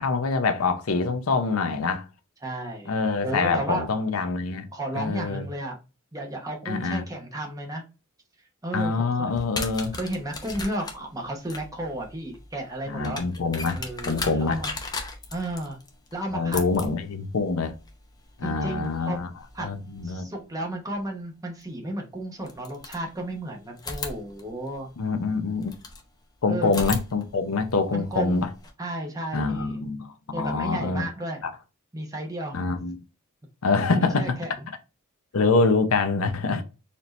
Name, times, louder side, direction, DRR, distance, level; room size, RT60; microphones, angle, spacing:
voice 1, 0.0-2.0 2.9-4.7 5.0-5.4 6.7-7.0 8.7-9.9 12.9-13.8 14.1-14.6 16.3-17.7 18.4-19.3 19.6-20.3 25.0-25.7 26.4-28.5 29.3-31.1 32.5-33.0 33.6-34.4 35.3-36.6, left 4 dB, 80° left, 0.6 m, -25 dB
voice 2, 2.4-2.9 3.2-3.9 4.7-5.8 6.1-7.8 8.6-9.3 9.9-13.2 13.7-14.8 15.3-15.8 16.1-16.6 18.4-19.2 19.5-19.7 20.0-24.9 26.5-27.0 27.9-28.5 28.8-29.8 30.3-31.4 31.9-32.6 33.9-34.7 36.4-36.6, right 1 dB, 15° right, 0.9 m, -33 dB
sound 1, 9.3-20.1 21.6-21.7 22.4-23.4 23.8-26.0 26.6-28.7, left 3 dB, 20° left, 0.6 m, -38 dB
4.3 x 2.8 x 3.1 m
head